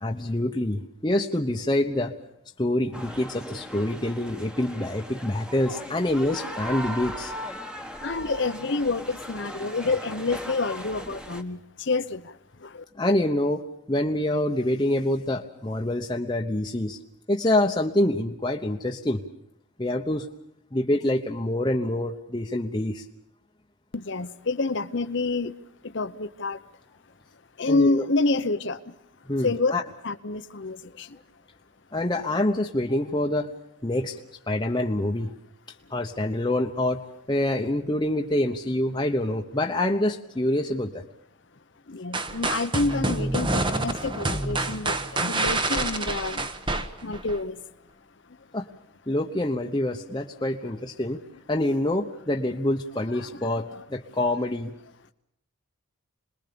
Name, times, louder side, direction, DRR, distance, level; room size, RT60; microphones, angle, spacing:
voice 1, 0.0-2.1 2.6-7.3 12.9-17.0 17.3-19.2 19.8-20.3 20.7-23.0 27.7-28.0 29.3-29.8 31.9-33.5 33.8-35.3 35.9-41.0 48.5-48.7 49.1-51.2 51.5-54.7, left 1 dB, 20° left, 1.0 m, -26 dB
sound 1, 2.9-11.4, equal, 5° right, 1.4 m, -38 dB
voice 2, 8.0-12.8 23.9-25.6 25.8-26.6 27.6-29.0 29.4-29.7 30.0-31.2 41.9-46.5 47.0-47.6, left 3 dB, 55° left, 0.9 m, -28 dB
sound 2, 42.1-47.4, right 2 dB, 20° right, 1.1 m, -27 dB
27.0 x 21.0 x 6.9 m
head